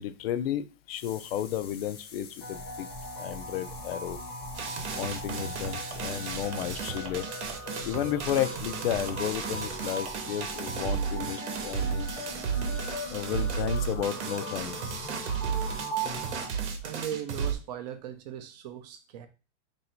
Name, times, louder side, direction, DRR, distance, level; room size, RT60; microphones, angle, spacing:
voice 1, 0.0-2.9 3.2-4.2 5.0-12.1 13.1-15.0, left 11 dB, 55° left, 13 dB, 0.5 m, -33 dB
sound 1, 1.0-6.5, left 6 dB, 80° left, 1.2 m, -48 dB
sound 2, 2.4-16.5, right 1 dB, 5° left, 0.6 m, -39 dB
sound 3, 4.5-17.5, right 6 dB, 70° right, 0.9 m, -34 dB
voice 2, 16.8-19.3, right 10 dB, 35° right, 8 dB, 0.5 m, -38 dB
3.0 x 2.7 x 4.3 m, 0.31 s
supercardioid pair, 165°, 36 cm